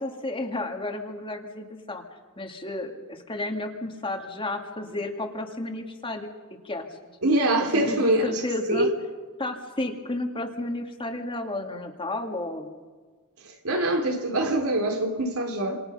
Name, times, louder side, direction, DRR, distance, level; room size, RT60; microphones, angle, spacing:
voice 1, 0.0-2.0 2.4-6.3 6.6-6.9 7.7-8.9 9.4-12.7, left 2 dB, 25° left, 2.3 m, -32 dB
voice 2, 7.2-8.4 8.7-8.9 13.6-15.8, right 1 dB, 80° right, 3.3 m, -24 dB
28.0 x 27.5 x 5.6 m
head